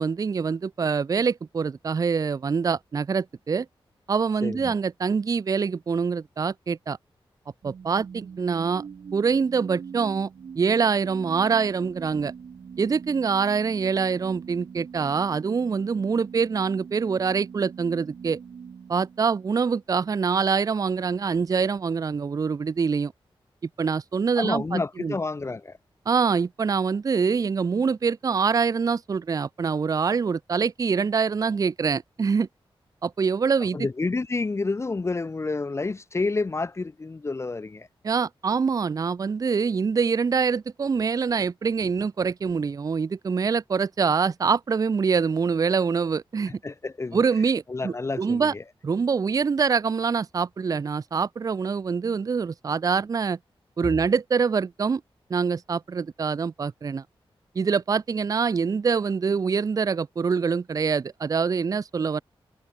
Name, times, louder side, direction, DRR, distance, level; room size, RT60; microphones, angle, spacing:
voice 1, 0.0-3.7 4.1-7.0 7.6-8.8 9.1-10.3 10.6-12.3 12.8-18.4 18.9-23.1 23.8-25.1 26.1-32.5 33.0-33.9 38.0-46.6 47.1-48.5 48.8-53.4 53.8-55.0 55.3-57.0 57.6-62.2, right 5 dB, 40° right, 0.4 m, -25 dB
voice 2, 4.4-4.7 24.4-25.8 33.7-37.9 46.6-47.2 47.7-48.6 53.8-53.9, left 3 dB, 30° left, 0.6 m, -29 dB
sound 1, 7.6-19.8, right 6 dB, 70° right, 1.3 m, -42 dB
wide cardioid pair, 100°, 9 cm